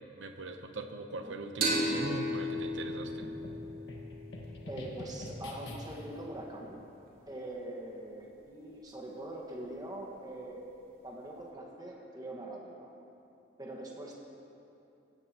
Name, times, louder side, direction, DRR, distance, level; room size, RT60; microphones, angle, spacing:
voice 1, 0.1-3.3, right 2 dB, 75° right, 6 dB, 0.8 m, -41 dB
sound 1, 1.6-5.0, equal, 50° right, 2.7 m, -34 dB
sound 2, 2.5-6.2, left 1 dB, 65° left, 1.6 m, -45 dB
voice 2, 4.7-6.8 7.3-10.6 11.0-12.9 13.6-14.1, right 1 dB, 20° right, -1 dB, 1.5 m, -43 dB
18.0 x 15.5 x 3.0 m, 2.8 s
head